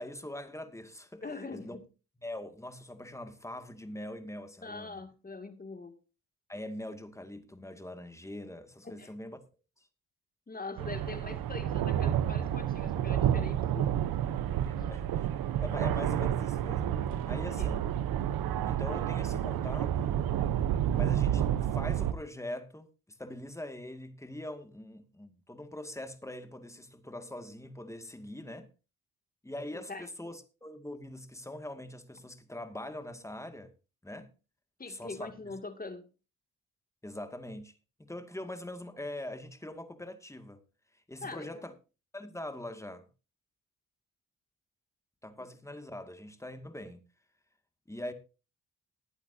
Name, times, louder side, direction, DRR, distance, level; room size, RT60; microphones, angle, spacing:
voice 1, 0.0-1.8 2.2-4.9 6.5-9.4 9.8-9.9 14.7-15.3 15.6-17.0 17.3-17.9 18.6-20.2 20.9-28.7 29.4-33.7 34.0-34.3 34.9-35.3 37.0-37.7 38.0-40.6 40.9-41.7 42.1-43.1 45.2-47.0 47.9-48.1, left 1 dB, 10° left, 2.1 m, -42 dB
voice 2, 1.2-1.8 4.6-6.0 8.8-9.1 10.5-14.2 14.8-15.0 17.5-17.8 29.7-30.1 34.8-36.0 41.2-41.6 45.4-45.5, left 3 dB, 25° left, 2.4 m, -43 dB
sound 1, 10.8-22.1, right 10 dB, 85° right, 1.0 m, -30 dB
19.5 x 9.1 x 2.8 m
cardioid pair, 80°, 35 cm